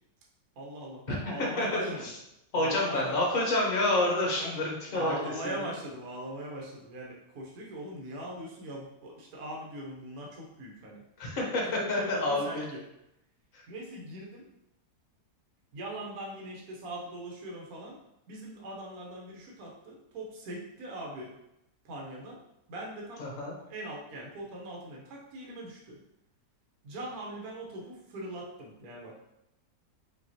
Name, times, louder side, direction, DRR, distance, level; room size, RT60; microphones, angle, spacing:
voice 1, 0.6-2.1 2.5-3.2 4.4-4.5 4.9-11.0 11.8-12.8 13.7-14.5 15.7-18.0 18.3-21.3 21.8-22.4 22.7-23.3 23.7-26.0 26.8-29.2, right 1 dB, 65° right, -2 dB, 1.2 m, -40 dB
voice 2, 1.6-1.9 2.5-5.1 5.4-5.5 11.2-12.6 13.5-13.6 23.2-23.6, left 2 dB, 55° left, -2 dB, 1.4 m, -28 dB
5.1 x 2.9 x 2.8 m, 0.85 s
omnidirectional pair, 1.8 m